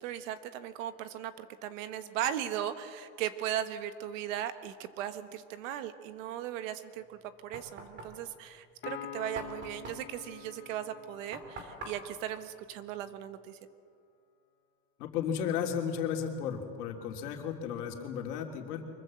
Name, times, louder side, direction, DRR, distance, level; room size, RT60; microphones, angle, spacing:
voice 1, 0.0-13.6, right 11 dB, 50° right, 11 dB, 1.5 m, -37 dB
Knock, 7.0-13.5, right 2 dB, 20° right, 2.9 m, -48 dB
Piano, 8.8-12.4, left 9 dB, 20° left, 1.7 m, -47 dB
voice 2, 15.0-18.8, left 8 dB, 65° left, 2 dB, 3.3 m, -34 dB
24.5 x 21.5 x 7.7 m, 2.2 s
supercardioid pair, 170°, 49 cm